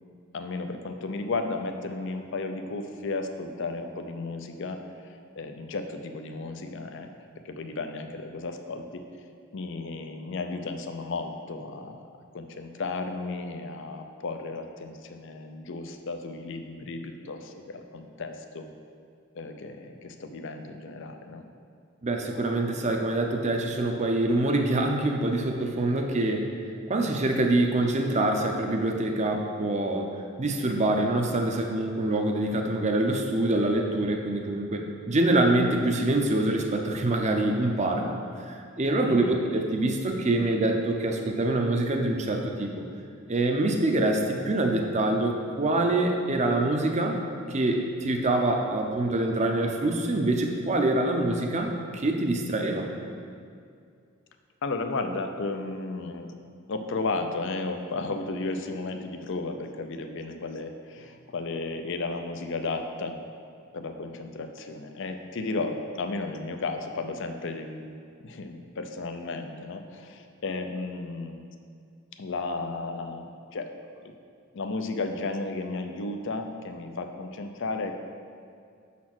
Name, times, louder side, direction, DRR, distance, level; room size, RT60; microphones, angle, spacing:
voice 1, 0.3-7.1 7.4-9.0 9.5-12.0 12.3-18.7 19.3-21.4 39.1-39.4 54.6-56.3 56.7-63.2 63.7-67.9 68.2-71.4 72.2-73.3 73.5-74.1 74.5-77.9, left 3 dB, 60° left, 6 dB, 0.5 m, -34 dB
voice 2, 22.0-26.4 26.9-30.1 30.4-38.1 38.5-42.7 43.3-47.2 47.5-52.9, right 2 dB, 35° right, 3 dB, 0.6 m, -25 dB
6.1 x 4.2 x 6.0 m, 2.3 s
head